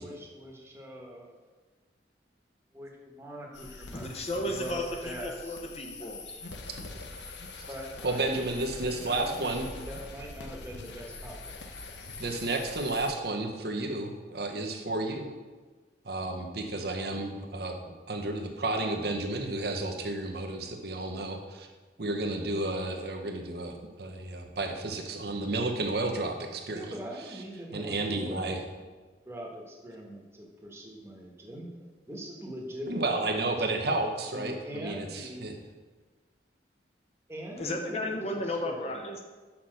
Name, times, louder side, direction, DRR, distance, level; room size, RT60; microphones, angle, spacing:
voice 1, 0.0-1.5 2.7-4.1 4.4-5.6 7.7-8.3 9.0-11.6 26.7-28.6 29.3-31.7 32.1-34.0 34.3-35.5 37.3-39.1, equal, 15° right, -1 dB, 1.3 m, -42 dB
sound 1, 3.5-13.1, left 3 dB, 75° left, 0.8 m, -43 dB
voice 2, 3.9-6.4 37.6-39.2, left 1 dB, 35° left, 3 dB, 0.9 m, -34 dB
voice 3, 8.0-9.6 12.2-15.3 16.0-17.8 18.1-21.7 22.0-27.0 27.7-28.6 32.9-35.5, right 2 dB, 60° right, 3 dB, 0.9 m, -32 dB
5.9 x 5.8 x 6.4 m, 1.3 s
head